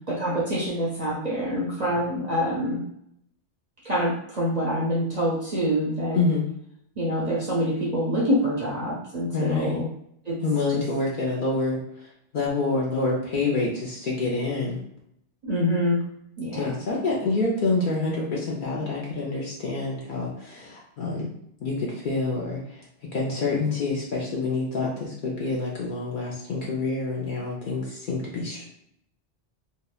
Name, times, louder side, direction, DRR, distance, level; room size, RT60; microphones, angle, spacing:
voice 1, 0.1-2.8 3.8-6.2 7.0-9.9 10.3-10.4 10.7-10.8 15.4-16.0 16.4-16.8, equal, 45° right, -6 dB, 0.6 m, -26 dB
voice 2, 9.3-9.8 10.4-11.8 12.3-14.8 16.5-21.3 21.6-22.6 23.1-28.6, left 3 dB, 55° left, -4 dB, 0.6 m, -27 dB
2.8 x 2.1 x 2.3 m, 0.73 s
omnidirectional pair, 1.2 m